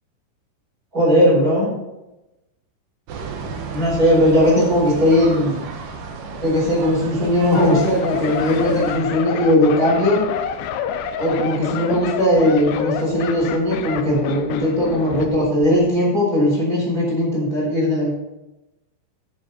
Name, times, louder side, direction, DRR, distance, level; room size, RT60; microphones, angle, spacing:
voice 1, 0.9-1.7 3.7-5.7 6.4-10.2 11.2-18.1, left 1 dB, 20° right, -5 dB, 4.7 m, -18 dB
sound 1, 3.1-9.0, right 4 dB, 70° right, 2.0 m, -32 dB
sound 2, 7.5-15.4 15.6-15.9, left 8 dB, 85° left, 2.4 m, -28 dB
11.0 x 10.5 x 4.1 m, 0.98 s
omnidirectional pair, 5.8 m